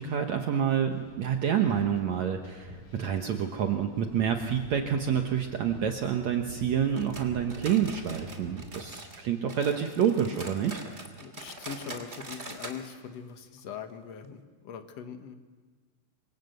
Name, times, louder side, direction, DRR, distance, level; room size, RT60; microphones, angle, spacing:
voice 1, 0.0-10.8, right 8 dB, 85° right, 4 dB, 1.5 m, -28 dB
sound 1, 0.9-8.7, left 2 dB, 50° left, 5.6 m, -48 dB
sound 2, 6.9-9.2 9.5-12.8 13.1-13.2 13.6-13.7 14.2-14.3, right 2 dB, 20° right, 2.1 m, -43 dB
voice 2, 11.2-15.4, left 7 dB, 65° left, 7 dB, 1.6 m, -41 dB
27.5 x 24.5 x 8.1 m, 1.4 s
omnidirectional pair, 5.0 m